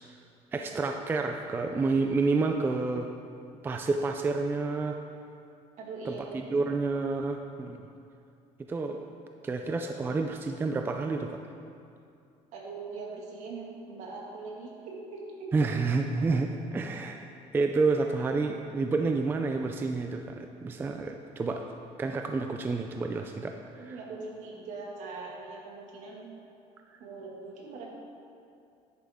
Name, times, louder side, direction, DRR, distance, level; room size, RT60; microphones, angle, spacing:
voice 1, 0.5-3.1 3.6-5.0 6.1-7.8 8.7-9.1 9.4-11.4 15.5-17.3 17.5-21.6 22.0-24.0, right 3 dB, 15° right, 4 dB, 0.4 m, -29 dB
voice 2, 5.8-6.5 12.5-15.5 23.8-26.3 27.0-27.9, right 3 dB, 60° right, -2 dB, 2.0 m, -41 dB
10.5 x 9.0 x 3.6 m, 2.5 s
cardioid pair, 150°, 14 cm